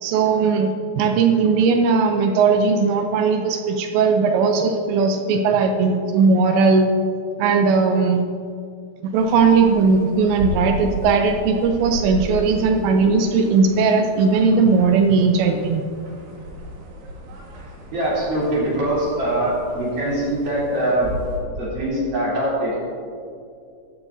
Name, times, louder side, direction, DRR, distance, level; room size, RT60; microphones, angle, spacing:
voice 1, 0.0-6.9 7.4-8.2 9.0-15.8, right 4 dB, 85° right, 5 dB, 2.5 m, -18 dB
sound 1, 9.1-21.4, right 1 dB, 70° right, 3.8 m, -34 dB
voice 2, 17.9-21.1 21.5-22.8, right 1 dB, 45° right, -8 dB, 4.4 m, -23 dB
14.5 x 13.0 x 2.7 m, 2.4 s
omnidirectional pair, 5.8 m